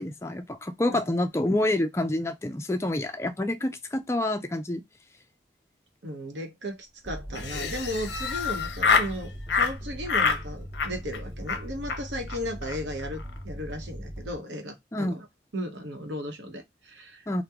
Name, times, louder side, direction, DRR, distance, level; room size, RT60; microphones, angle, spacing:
voice 1, 0.0-4.8 14.9-15.2 17.3-17.4, left 1 dB, 15° left, 0.4 m, -27 dB
voice 2, 6.0-15.2 15.5-17.4, equal, 80° right, 0.9 m, -36 dB
sound 1, 7.1-14.4, equal, 20° right, 0.8 m, -39 dB
Laughter, 7.3-9.1 9.5-9.7 10.1-10.4 10.7-11.2 11.5-11.6 11.9-12.0 12.3-12.4 12.6-12.8 13.0-13.4, left 5 dB, 65° left, 0.6 m, -26 dB
2.9 x 2.2 x 3.4 m
head